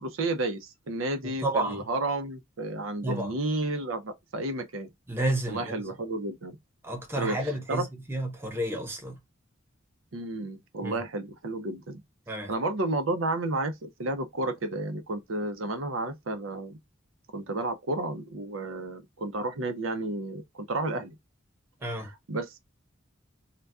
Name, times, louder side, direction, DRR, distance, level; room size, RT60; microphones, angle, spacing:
voice 1, 0.0-4.9 5.5-6.6 7.2-7.9 10.1-12.0 12.5-16.8 17.3-21.2 21.8-22.6, right 2 dB, 85° right, 0.7 m, -32 dB
voice 2, 1.4-1.8 3.0-3.3 5.1-5.7 6.8-9.2 10.8-11.0 12.3-12.5 21.8-22.1, right 1 dB, 10° right, 0.8 m, -31 dB
3.9 x 2.2 x 2.3 m
head